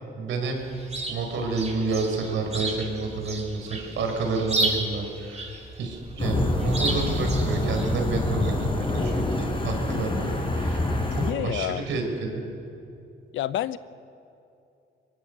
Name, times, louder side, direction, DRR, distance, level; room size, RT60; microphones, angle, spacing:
voice 1, 0.1-0.6 1.1-5.5 5.8-10.8 11.1-12.4, right 3 dB, 75° right, 3 dB, 4.9 m, -29 dB
Chirp tweet, 0.6-8.2, right 2 dB, 35° right, 4.4 m, -33 dB
sound 1, 6.2-11.3, left 1 dB, 25° left, 4.5 m, -26 dB
voice 2, 11.1-11.8 13.3-13.8, left 12 dB, 75° left, 15 dB, 0.8 m, -29 dB
23.5 x 22.0 x 6.8 m, 2.7 s
cardioid pair, 90°, 20 cm